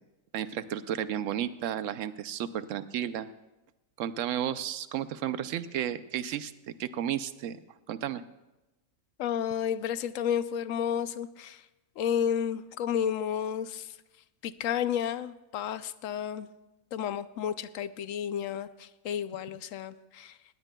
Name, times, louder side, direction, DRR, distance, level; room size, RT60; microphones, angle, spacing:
voice 1, 0.3-3.3 4.0-6.5 6.8-7.6 7.9-8.2, right 10 dB, 70° right, 13 dB, 0.9 m, -33 dB
voice 2, 9.2-11.6 12.0-14.0 14.4-16.5 16.9-20.4, left 9 dB, 75° left, 14 dB, 0.9 m, -31 dB
18.5 x 18.0 x 2.3 m, 1.0 s
omnidirectional pair, 1.4 m